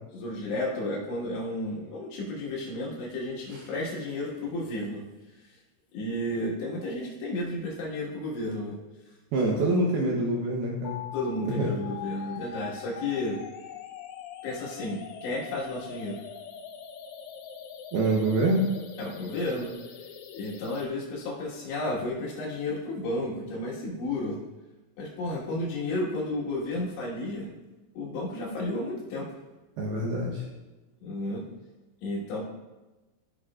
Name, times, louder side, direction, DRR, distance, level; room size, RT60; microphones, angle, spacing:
voice 1, 0.1-5.0 5.9-8.8 9.4-9.5 11.1-13.4 14.4-16.2 19.0-19.7 20.3-24.4 25.0-27.5 28.0-29.3 31.0-31.4 32.0-32.4, left 1 dB, 70° left, -4 dB, 3.6 m, -32 dB
voice 2, 9.3-11.0 11.5-11.7 17.9-18.7 29.8-30.4, right 2 dB, 75° right, -2 dB, 2.5 m, -26 dB
sound 1, 10.8-20.8, left 8 dB, 85° left, 3.3 m, -42 dB
15.5 x 6.1 x 2.4 m, 1.1 s
omnidirectional pair, 5.5 m